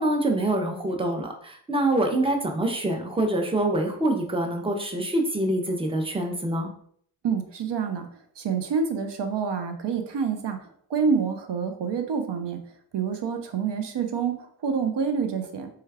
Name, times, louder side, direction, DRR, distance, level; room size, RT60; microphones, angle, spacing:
voice 1, 0.0-6.7, right 1 dB, 15° right, 3 dB, 0.5 m, -25 dB
voice 2, 7.2-8.1 8.4-10.6 10.9-12.6 12.9-15.7, right 6 dB, 70° right, 6 dB, 0.6 m, -27 dB
3.4 x 2.3 x 3.3 m, 0.63 s
wide cardioid pair, 105°, 43 cm